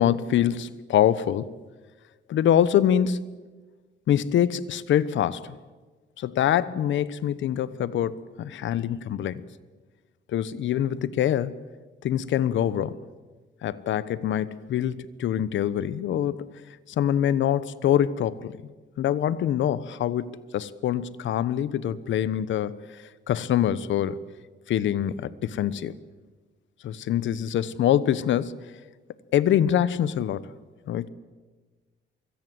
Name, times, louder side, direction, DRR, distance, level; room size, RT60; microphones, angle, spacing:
voice 1, 0.0-1.5 2.3-3.4 4.1-5.6 6.2-9.4 10.3-11.6 12.0-13.0 13.6-16.4 17.0-18.6 19.0-24.2 24.7-26.0 26.8-28.7 29.3-30.5 30.9-31.1, left 10 dB, 70° left, 17 dB, 1.1 m, -25 dB
24.5 x 22.0 x 7.8 m, 1.3 s
cardioid pair, 90°, 20 cm